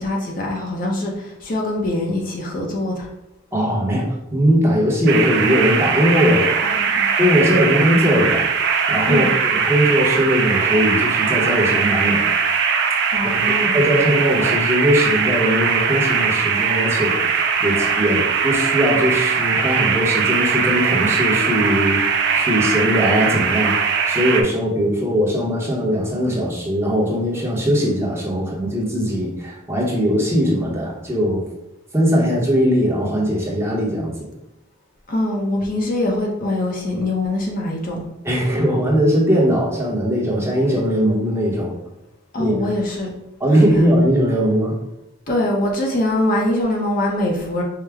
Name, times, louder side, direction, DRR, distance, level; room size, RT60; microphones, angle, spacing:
voice 1, 0.0-3.1 6.6-7.1 9.1-9.3 13.1-13.8 35.1-38.0 42.3-43.1 45.3-47.6, left 1 dB, 45° left, -1 dB, 0.7 m, -23 dB
voice 2, 3.5-4.1 4.3-6.5 7.2-8.5 8.9-12.2 13.4-17.3 17.6-31.4 31.9-34.1 38.2-41.7 42.4-42.7 43.4-44.7, equal, 10° right, -4 dB, 0.8 m, -19 dB
sound 1, 5.1-24.4, right 6 dB, 60° right, 0.4 m, -20 dB
4.7 x 2.1 x 3.4 m, 0.87 s
head